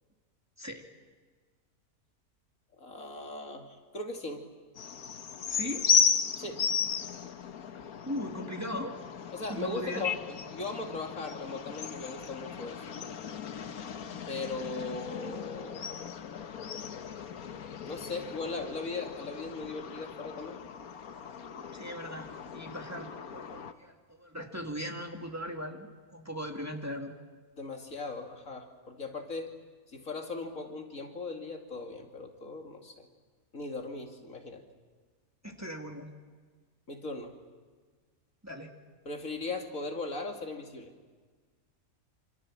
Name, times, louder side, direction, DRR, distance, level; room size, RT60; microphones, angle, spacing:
voice 1, 2.8-4.5 6.4-6.7 9.3-12.8 14.3-16.0 17.9-20.6 27.6-29.5 29.9-33.1 33.5-34.6 36.9-37.4 39.0-40.9, left 3 dB, 65° left, 3 dB, 2.8 m, -38 dB
sound 1, 4.7-23.7, left 6 dB, 80° left, 1.6 m, -35 dB
voice 2, 5.5-5.9 8.1-9.0 9.5-10.1 21.7-27.1 35.4-36.1 38.4-38.7, equal, 10° right, 2 dB, 2.3 m, -39 dB
27.5 x 27.0 x 7.5 m, 1.5 s
omnidirectional pair, 1.5 m